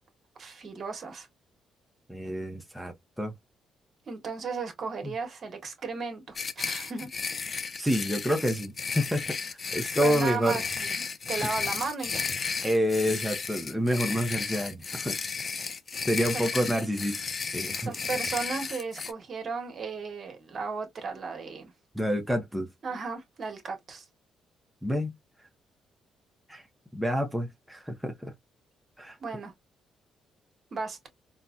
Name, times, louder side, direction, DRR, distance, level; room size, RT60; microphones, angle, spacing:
voice 1, 0.4-1.3 4.1-7.1 10.0-12.3 16.3-16.5 17.8-21.7 22.8-24.0 29.2-29.5 30.7-31.1, right 4 dB, 50° right, 1.2 m, -35 dB
voice 2, 2.1-3.3 5.0-5.1 7.8-10.6 12.6-15.2 16.1-17.2 17.5-17.9 21.9-22.7 24.8-25.1 26.5-26.6 26.9-28.3 29.0-29.2, equal, 5° right, 0.7 m, -28 dB
sound 1, 6.3-19.1, left 5 dB, 40° left, 0.4 m, -33 dB
4.0 x 2.1 x 2.4 m
cardioid pair, 90°, 0 cm